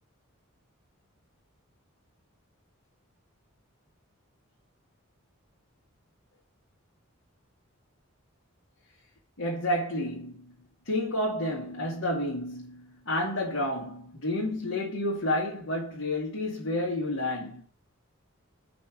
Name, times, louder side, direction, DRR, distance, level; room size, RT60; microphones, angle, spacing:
voice 1, 9.4-10.5 10.9-17.7, left 1 dB, 75° left, 2.4 m, -30 dB
6.0 x 4.5 x 6.1 m
head